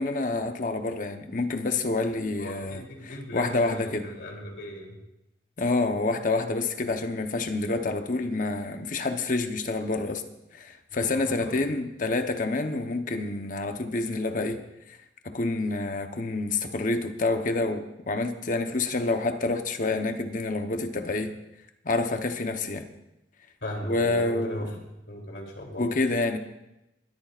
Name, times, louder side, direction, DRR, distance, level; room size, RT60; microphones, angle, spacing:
voice 1, 0.0-4.1 5.6-10.2 10.5-14.6 15.2-21.4 21.8-22.9 23.8-24.7 25.8-26.4, left 2 dB, 45° left, 1.0 m, -28 dB
voice 2, 2.3-5.0 10.9-11.5 23.6-24.7 25.1-25.9, left 1 dB, 70° left, 3.2 m, -38 dB
22.0 x 13.0 x 2.5 m
head